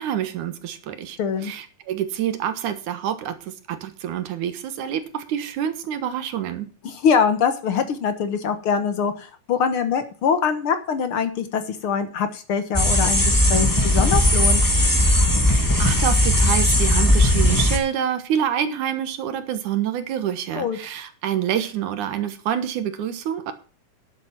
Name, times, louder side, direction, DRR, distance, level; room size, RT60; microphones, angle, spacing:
voice 1, 0.0-6.7 15.5-23.5, right 9 dB, 75° right, 10 dB, 2.7 m, -27 dB
voice 2, 1.2-1.5 6.8-14.6 20.6-20.8, left 6 dB, 55° left, 9 dB, 1.6 m, -23 dB
sound 1, 12.7-17.8, left 1 dB, 15° left, 0.7 m, -18 dB
11.0 x 8.2 x 6.0 m, 0.37 s
omnidirectional pair, 3.5 m